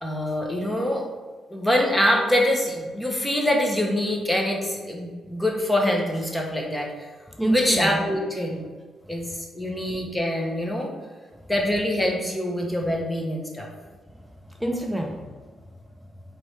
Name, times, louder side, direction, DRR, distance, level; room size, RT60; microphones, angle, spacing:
voice 1, 0.0-1.0 1.5-6.9 7.5-8.7 9.1-10.9 11.5-13.7, left 1 dB, 10° left, 1 dB, 0.9 m, -24 dB
voice 2, 7.3-8.0 9.0-9.8 11.3-11.5 14.1-16.4, right 1 dB, 5° right, 2 dB, 0.5 m, -30 dB
4.3 x 3.1 x 3.3 m, 1.4 s
cardioid pair, 80°, 0 cm